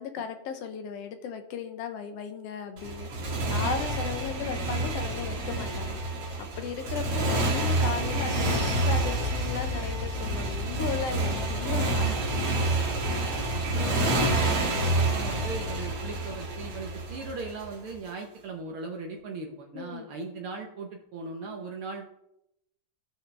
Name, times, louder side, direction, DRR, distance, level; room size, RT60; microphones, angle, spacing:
voice 1, 0.0-6.0 6.4-12.1 19.7-20.1, left 7 dB, 70° left, 6 dB, 1.5 m, -36 dB
Motorcycle, 2.8-17.9, right 2 dB, 50° right, 2.9 m, -28 dB
sound 1, 8.3-16.9 17.2-17.4 17.8-17.9, left 4 dB, 45° left, 4.1 m, -39 dB
voice 2, 13.5-22.1, right 3 dB, 70° right, 2 dB, 1.3 m, -39 dB
16.5 x 6.3 x 3.4 m, 0.82 s
omnidirectional pair, 3.8 m